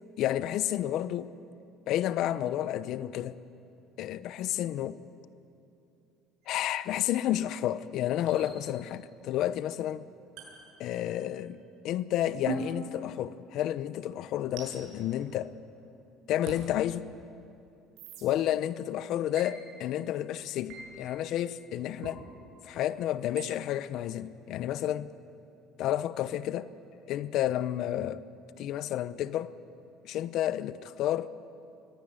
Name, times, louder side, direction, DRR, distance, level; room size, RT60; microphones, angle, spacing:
voice 1, 0.2-1.3 1.9-3.3 4.0-5.0 6.5-10.0 10.8-15.5 16.3-17.1 18.2-22.2 22.6-25.1 25.8-26.7 27.1-28.2 28.6-29.5 30.0-31.3, left 12 dB, 55° left, 0.8 m, -31 dB
sound 1, 6.4-6.6 8.3-9.0 10.4-11.4 12.5-13.8 14.6-15.9 16.5-16.6 18.0-18.2 19.4-19.5 20.7-20.9 22.0-22.2 23.4-23.5, right 6 dB, 70° right, 6.8 m, -43 dB
23.5 x 18.5 x 9.7 m
cardioid pair, 145°, 0 cm